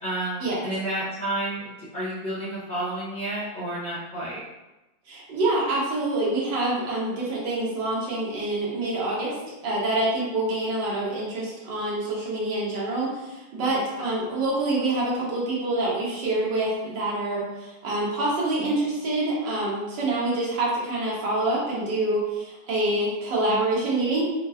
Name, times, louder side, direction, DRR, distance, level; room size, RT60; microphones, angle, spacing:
voice 1, 0.0-4.4 13.6-13.8 18.6-18.7 23.5-23.6, right 1 dB, 60° left, -8 dB, 0.5 m, -31 dB
voice 2, 5.1-9.4 9.6-24.2, right 2 dB, 75° right, -5 dB, 1.7 m, -26 dB
4.4 x 2.4 x 2.7 m, 1.0 s
omnidirectional pair, 2.0 m